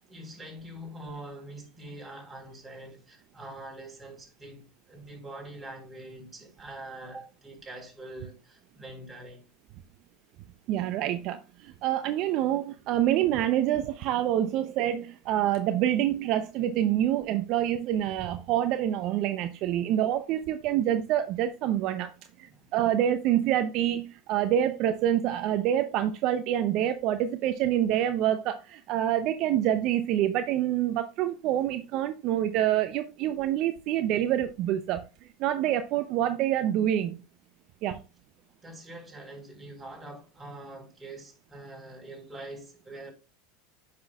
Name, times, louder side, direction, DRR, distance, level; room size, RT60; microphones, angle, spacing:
voice 1, 0.1-9.4 22.5-22.6 38.6-43.1, right 1 dB, 15° right, 4.3 m, -44 dB
voice 2, 10.7-22.1 22.4-35.0 35.4-37.2 37.8-38.0, right 11 dB, 55° right, 0.7 m, -26 dB
9.5 x 6.0 x 2.4 m
hypercardioid pair, 90°, 0 cm